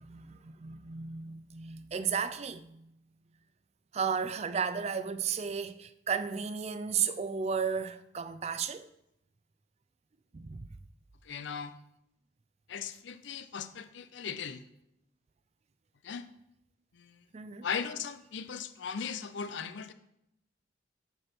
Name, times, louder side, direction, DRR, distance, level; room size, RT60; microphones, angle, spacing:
voice 1, 0.0-2.9 3.9-8.9 10.3-10.7 17.3-17.7, right 6 dB, 35° right, 0.4 m, -34 dB
voice 2, 11.2-11.7 12.7-14.6 16.0-16.3 16.9-17.2 17.6-19.9, left 6 dB, 85° left, 0.5 m, -38 dB
7.9 x 6.1 x 4.4 m
head